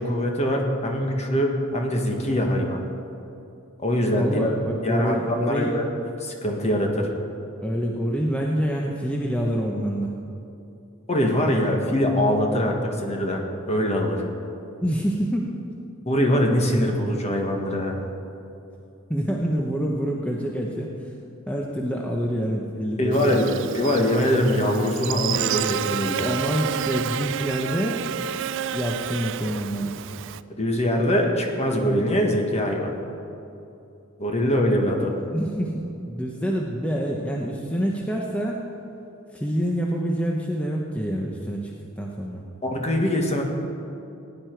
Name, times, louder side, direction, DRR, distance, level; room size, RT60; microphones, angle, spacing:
voice 1, 0.0-2.8 3.8-4.6 4.8-5.9 6.2-7.1 11.1-14.2 16.1-18.0 23.0-23.5 23.7-26.3 30.6-32.9 34.2-35.1 42.6-43.4, equal, 30° left, 2 dB, 1.5 m, -23 dB
voice 2, 4.1-5.7 7.6-10.1 14.8-15.5 19.1-20.9 21.5-23.6 26.2-28.0 28.7-30.0 35.3-38.6 39.3-41.7 42.0-42.5, equal, 5° left, -1 dB, 0.8 m, -26 dB
Buzz, 23.1-30.4, right 9 dB, 60° right, 0.4 m, -30 dB
17.0 x 10.0 x 4.6 m, 2.7 s
head